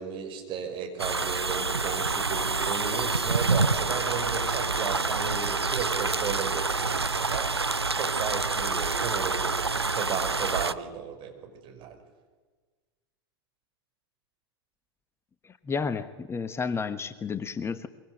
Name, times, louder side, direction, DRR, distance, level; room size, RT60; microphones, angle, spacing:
voice 1, 0.0-7.5 7.9-12.0, right 7 dB, 40° right, 4 dB, 6.0 m, -35 dB
sound 1, 1.0-10.7, right 4 dB, 85° right, 0.7 m, -27 dB
voice 2, 15.4-17.9, left 5 dB, 20° left, 12 dB, 1.1 m, -31 dB
24.0 x 24.0 x 8.1 m, 1.3 s
figure-of-eight pair, 85°, 13 cm